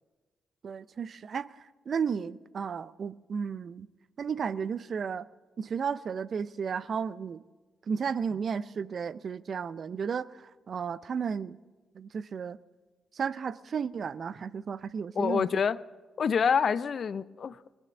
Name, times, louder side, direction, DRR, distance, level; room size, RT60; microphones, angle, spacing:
voice 1, 0.6-1.5 1.9-3.9 4.2-5.3 5.6-7.4 7.9-10.3 10.7-11.6 12.0-12.6 13.2-15.5, right 6 dB, 55° right, 0.5 m, -33 dB
voice 2, 15.2-15.8 16.2-17.8, left 6 dB, 55° left, 0.4 m, -27 dB
20.5 x 9.1 x 7.0 m
hypercardioid pair, 45°, 0 cm